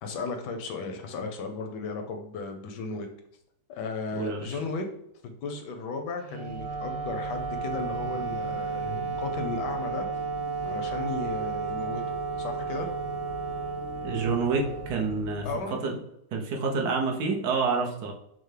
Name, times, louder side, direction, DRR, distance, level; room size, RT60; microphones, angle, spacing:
voice 1, 0.0-3.1 3.7-4.9 5.2-10.1 10.6-12.9 15.4-15.8, left 4 dB, 75° left, 4 dB, 1.2 m, -35 dB
voice 2, 4.1-4.5 14.0-15.9 16.3-18.1, right 4 dB, 70° right, 1 dB, 1.2 m, -28 dB
Wind instrument woodwind instrument, 6.2-15.6, right 5 dB, 85° right, 1.3 m, -33 dB
sound 1, 6.4-15.6, equal, 45° right, 0.5 m, -43 dB
5.5 x 2.0 x 3.2 m, 0.78 s
omnidirectional pair, 1.9 m